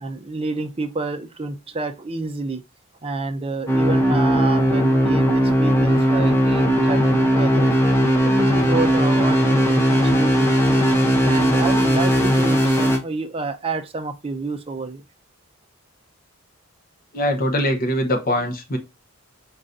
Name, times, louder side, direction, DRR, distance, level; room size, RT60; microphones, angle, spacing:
voice 1, 0.0-2.6 3.0-7.7 8.2-10.9 11.2-15.0, right 3 dB, 25° right, 0.5 m, -29 dB
sound 1, 3.7-13.0, equal, 10° left, 0.8 m, -18 dB
voice 2, 17.1-18.8, equal, 40° left, 0.9 m, -22 dB
4.7 x 3.9 x 2.5 m
head